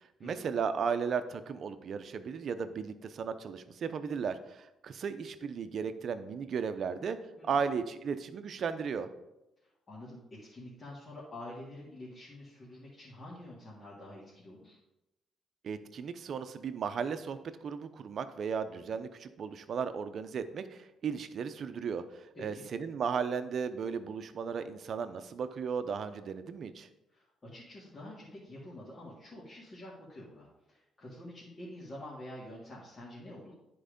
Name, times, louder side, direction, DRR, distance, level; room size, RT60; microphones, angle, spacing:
voice 1, 0.2-7.2 7.4-9.1 15.6-26.9, right 6 dB, 55° right, 10 dB, 0.7 m, -35 dB
voice 2, 9.6-14.8 22.3-22.7 27.1-33.5, left 1 dB, 35° left, -7 dB, 2.5 m, -47 dB
9.9 x 4.6 x 5.2 m, 0.93 s
cardioid pair, 90°, 0 cm